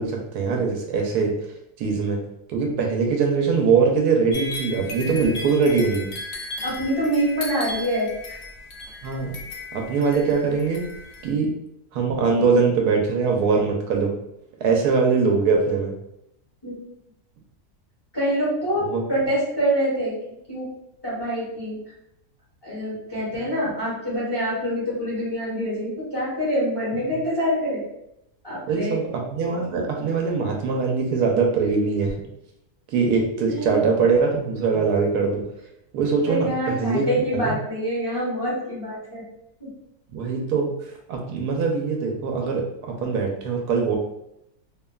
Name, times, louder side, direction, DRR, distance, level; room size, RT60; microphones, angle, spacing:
voice 1, 0.0-1.3 1.8-2.2 2.5-6.1 9.0-9.4 9.7-10.9 11.2-11.5 11.9-14.1 14.6-15.9 18.9-19.0 28.7-32.1 32.9-35.4 35.9-37.1 37.3-37.6 40.1-40.7 41.1-44.0, right 5 dB, 80° right, 1 dB, 1.1 m, -22 dB
sound 1, 4.3-11.3, left 2 dB, 75° left, 0.6 m, -36 dB
voice 2, 6.6-8.4 16.6-16.8 18.1-20.1 20.5-20.7 21.0-21.8 22.6-27.8 28.4-29.0 33.5-33.7 36.2-39.2 39.6-39.7, equal, 20° left, -9 dB, 0.8 m, -25 dB
3.0 x 2.2 x 2.3 m, 0.81 s
omnidirectional pair, 1.7 m